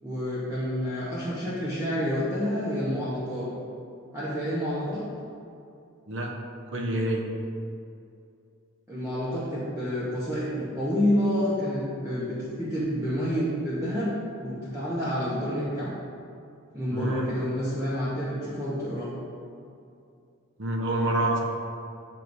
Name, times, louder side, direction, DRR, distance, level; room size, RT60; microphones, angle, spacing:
voice 1, 0.0-3.5 4.1-5.1 8.9-15.9 16.7-19.1, equal, 15° right, -10 dB, 0.9 m, -29 dB
voice 2, 6.1-6.4 6.7-7.2 16.9-17.5 20.6-21.4, right 1 dB, 65° right, 1 dB, 0.7 m, -27 dB
8.9 x 4.7 x 2.6 m, 2.5 s
head